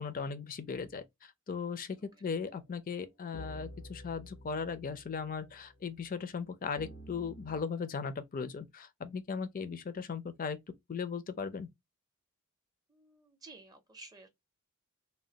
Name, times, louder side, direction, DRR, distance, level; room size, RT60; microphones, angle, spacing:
voice 1, 0.0-10.6 10.9-11.7, left 5 dB, 40° left, 0.4 m, -38 dB
sound 1, 2.0-2.1 2.5-2.6 3.3-6.1 6.8-7.6, equal, 70° left, 0.8 m, -50 dB
voice 2, 12.9-14.3, right 3 dB, 20° right, 0.5 m, -53 dB
3.2 x 2.3 x 2.7 m
head